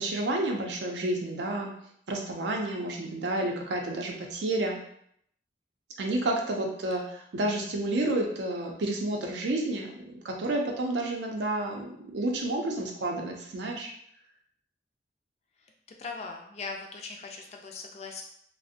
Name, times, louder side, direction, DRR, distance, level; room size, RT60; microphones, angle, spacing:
voice 1, 0.0-1.7 2.1-4.8 6.0-13.9, right 1 dB, 85° right, 1 dB, 0.5 m, -30 dB
voice 2, 16.0-18.2, left 4 dB, 35° left, 2 dB, 0.3 m, -40 dB
2.5 x 2.0 x 2.6 m, 0.69 s
head